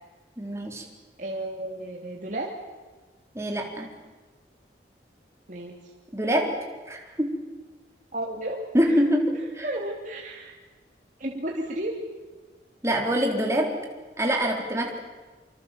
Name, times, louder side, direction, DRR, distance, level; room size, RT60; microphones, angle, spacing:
voice 1, 0.4-0.9 3.3-3.9 6.1-7.4 8.7-9.7 12.8-13.8 14.2-15.0, equal, 15° right, 1 dB, 3.8 m, -25 dB
voice 2, 1.2-2.5 5.5-5.9 8.1-8.6 8.8-9.0 9.6-10.5 11.2-12.0, right 1 dB, 45° right, -1 dB, 2.8 m, -33 dB
26.0 x 26.0 x 7.5 m, 1.3 s
head